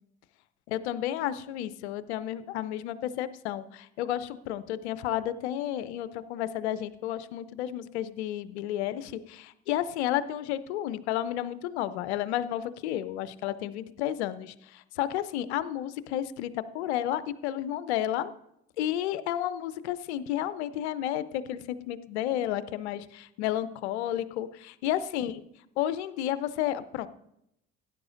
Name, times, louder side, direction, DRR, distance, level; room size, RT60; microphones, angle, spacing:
voice 1, 0.7-18.3 18.8-25.3 25.8-27.1, left 12 dB, 70° left, 15 dB, 0.7 m, -32 dB
18.0 x 10.0 x 2.5 m, 0.80 s
figure-of-eight pair, 55°, 34 cm